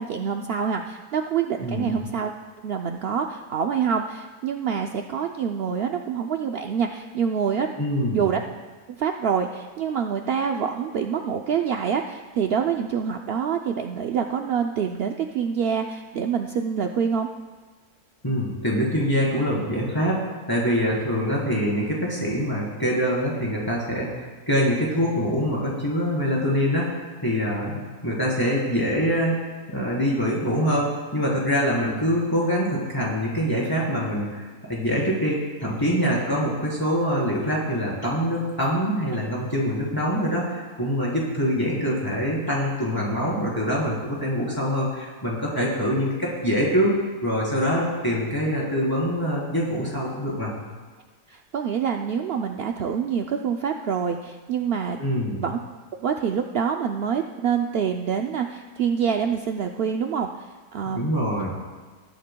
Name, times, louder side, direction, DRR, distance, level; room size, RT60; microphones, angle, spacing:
voice 1, 0.0-2.3 2.6-7.7 8.1-8.4 9.0-17.3 51.3-55.0 55.4-55.6 56.0-60.5 60.7-61.1, right 7 dB, 70° right, 3 dB, 0.5 m, -26 dB
voice 2, 1.6-1.9 7.8-8.2 18.2-20.2 20.5-29.5 29.7-34.4 34.7-46.9 47.2-50.5 55.0-55.4 60.9-61.5, equal, 15° left, -5 dB, 3.8 m, -24 dB
20.0 x 12.0 x 2.3 m, 1.4 s
omnidirectional pair, 1.6 m